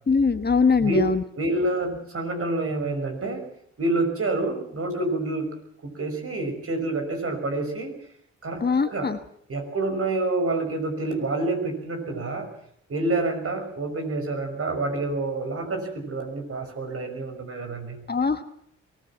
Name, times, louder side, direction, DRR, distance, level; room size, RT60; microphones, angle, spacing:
voice 1, 0.1-1.2 8.6-9.2 18.1-18.4, left 5 dB, 35° left, 9 dB, 1.5 m, -22 dB
voice 2, 1.3-3.5 3.8-5.5 5.8-7.9 8.4-9.1 9.5-12.5 12.9-18.0, right 2 dB, 50° right, 5 dB, 6.0 m, -28 dB
23.0 x 16.0 x 7.4 m, 0.68 s
supercardioid pair, 60°, 29 cm